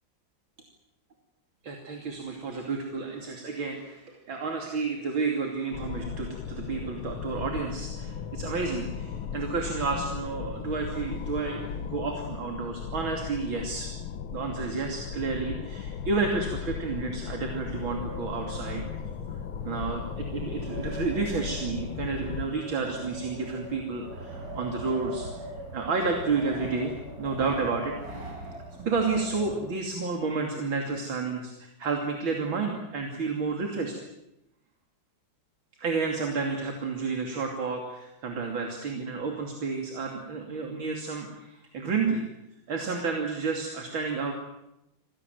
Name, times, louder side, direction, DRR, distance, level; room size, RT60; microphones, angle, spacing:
voice 1, 1.6-13.9 14.3-18.8 19.6-25.3 25.7-28.5 28.8-34.0 35.8-42.2 42.7-44.3, right 4 dB, 75° right, 2 dB, 3.6 m, -31 dB
sound 1, 5.7-22.5, left 7 dB, 85° left, 2.0 m, -36 dB
Wind, 17.4-30.1, right 1 dB, 45° right, 5.0 m, -41 dB
27.5 x 18.0 x 9.3 m, 0.89 s
omnidirectional pair, 2.2 m